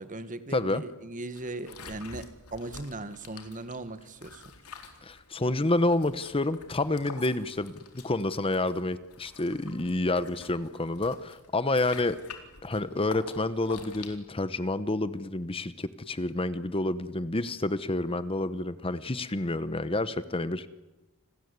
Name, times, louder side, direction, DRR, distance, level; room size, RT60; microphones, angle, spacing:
voice 1, 0.0-4.5, right 2 dB, 35° right, 12 dB, 1.7 m, -38 dB
voice 2, 0.5-0.8 5.0-12.2 12.6-20.7, left 2 dB, 25° left, 14 dB, 0.9 m, -29 dB
sound 1, 1.3-14.2, left 4 dB, 85° left, 4.1 m, -48 dB
29.5 x 20.5 x 9.6 m, 1.0 s
head